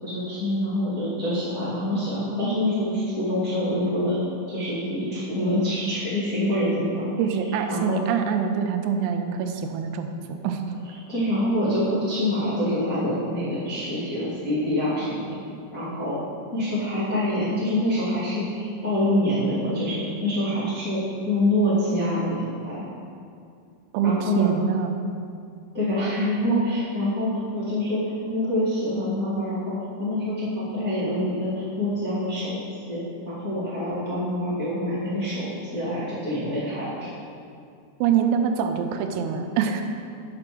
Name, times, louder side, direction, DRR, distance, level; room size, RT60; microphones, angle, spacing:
voice 1, 0.0-4.2 4.5-7.0 7.7-8.0 11.1-15.4 15.7-16.2 16.5-21.0 21.2-22.8 24.0-24.5 25.7-29.7 30.0-32.6 32.9-33.0 33.2-37.1, left 1 dB, 60° left, -12 dB, 0.8 m, -26 dB
voice 2, 7.2-10.6 23.9-24.9 38.0-39.8, right 7 dB, 85° right, 5 dB, 3.3 m, -25 dB
7.7 x 6.9 x 6.0 m, 2.3 s
omnidirectional pair, 6.0 m